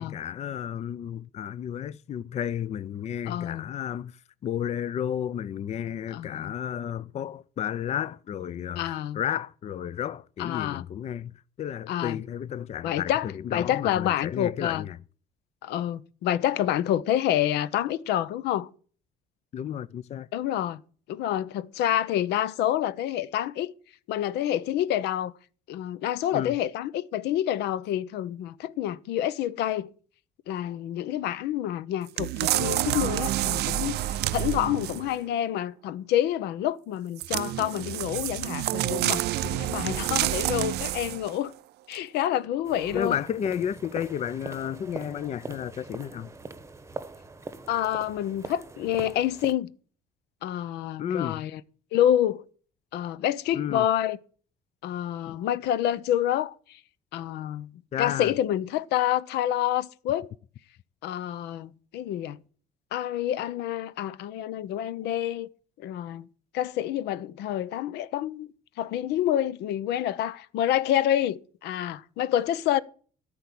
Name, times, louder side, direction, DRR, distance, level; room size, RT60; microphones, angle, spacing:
voice 1, 0.0-15.0 19.5-20.3 26.3-26.6 42.9-46.3 51.0-51.4 53.5-53.9 55.3-55.4 57.9-58.3, left 9 dB, 40° left, 0.5 m, -32 dB
voice 2, 3.3-3.7 6.1-6.5 8.8-9.2 10.4-10.8 11.9-12.2 12.8-13.3 13.5-14.8 15.6-18.7 20.3-20.8 21.1-23.7 24.1-25.3 25.7-29.9 30.5-41.5 41.9-43.2 47.7-49.7 50.4-51.6 51.9-52.4 52.9-54.2 54.8-56.5 57.1-57.7 58.0-60.3 61.0-62.4 62.9-65.5 65.8-66.3 66.5-68.5 68.8-72.8, left 11 dB, 80° left, 0.7 m, -28 dB
sound 1, 32.2-35.2 37.2-41.4 41.9-42.0, right 15 dB, 75° right, 0.5 m, -28 dB
sound 2, 42.6-49.5, right 3 dB, 15° right, 0.9 m, -42 dB
13.5 x 4.7 x 8.4 m
cardioid pair, 110°, 17 cm